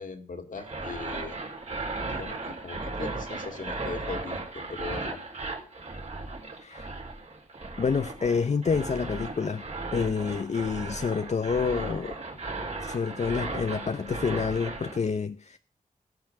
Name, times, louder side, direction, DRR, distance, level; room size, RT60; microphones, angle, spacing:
voice 1, 0.0-1.4 2.0-5.2, left 4 dB, 70° left, 2.2 m, -39 dB
sound 1, 0.6-15.0, right 3 dB, 50° right, 4.1 m, -36 dB
voice 2, 6.6-6.9 7.8-9.6 9.9-12.2 12.8-15.6, left 5 dB, 55° left, 0.6 m, -28 dB
16.5 x 5.8 x 7.5 m
wide cardioid pair, 80°, 14 cm